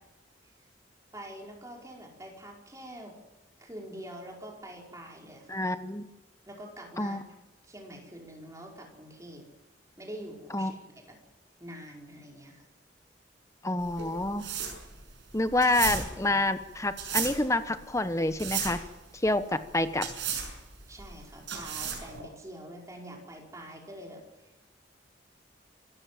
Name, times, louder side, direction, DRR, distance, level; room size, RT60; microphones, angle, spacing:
voice 1, 1.1-3.2 3.6-5.6 6.5-7.2 7.7-9.4 10.0-10.8 11.1-11.2 11.6-12.6 20.9-24.7, right 1 dB, 15° right, 0 dB, 5.1 m, -45 dB
voice 2, 5.5-6.1 7.0-7.2 10.5-10.7 13.6-14.4 15.3-18.8 19.2-20.1, left 2 dB, 15° left, 11 dB, 1.1 m, -28 dB
sound 1, 13.8-22.2, right 7 dB, 70° right, 6.5 m, -35 dB
26.5 x 14.5 x 7.7 m, 1.1 s
head